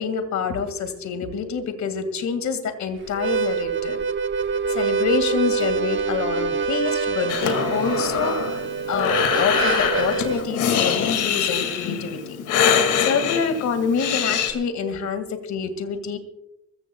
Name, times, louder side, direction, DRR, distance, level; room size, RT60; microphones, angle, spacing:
voice 1, 0.0-4.0 4.7-12.4 13.0-16.2, left 5 dB, 65° left, 10 dB, 2.1 m, -26 dB
Harmonica, 3.1-10.4, right 5 dB, 40° right, 0.8 m, -25 dB
Breathing, 7.3-14.5, left 7 dB, 90° left, 2.2 m, -24 dB
24.0 x 15.0 x 2.3 m, 0.83 s
cardioid pair, 90°, 30 cm